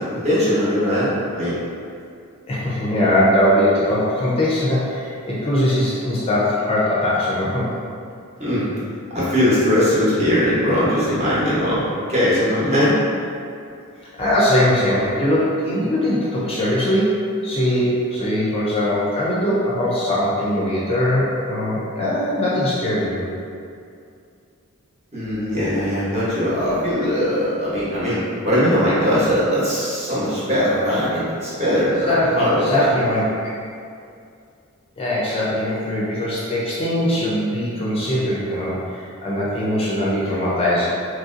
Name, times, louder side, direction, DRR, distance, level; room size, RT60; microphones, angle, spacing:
voice 1, 0.0-1.6 8.4-8.6 9.1-11.8 12.1-13.0 25.1-32.8, equal, 30° right, -10 dB, 0.9 m, -20 dB
voice 2, 2.5-7.7 14.2-23.2 32.1-33.2 35.0-40.9, left 1 dB, 25° left, -7 dB, 0.4 m, -21 dB
3.0 x 2.6 x 2.5 m, 2.4 s
head